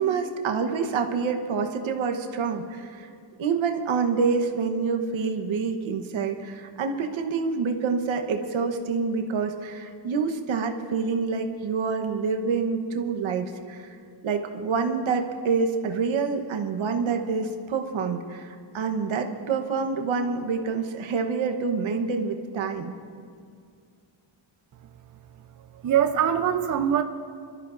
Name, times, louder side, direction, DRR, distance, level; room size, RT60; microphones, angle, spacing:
voice 1, 0.0-3.1 3.4-13.9 14.2-22.9, right 5 dB, 80° right, 5 dB, 1.1 m, -27 dB
voice 2, 25.7-27.0, right 9 dB, 40° right, 7 dB, 0.6 m, -23 dB
26.0 x 13.0 x 2.6 m, 2.2 s
cardioid pair, 110°, 47 cm